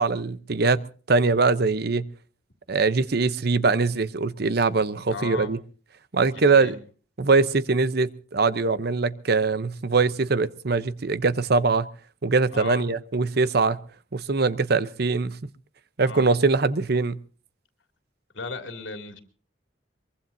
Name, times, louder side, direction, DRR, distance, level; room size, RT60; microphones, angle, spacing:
voice 1, 0.0-2.1 2.7-5.6 6.1-6.7 7.2-11.9 12.2-13.8 14.1-15.4 16.0-17.2, right 4 dB, 60° right, 0.8 m, -22 dB
voice 2, 5.1-5.5 6.5-6.8 12.5-12.8 16.0-16.3 18.3-19.2, left 3 dB, 85° left, 2.7 m, -35 dB
23.0 x 23.0 x 2.7 m
head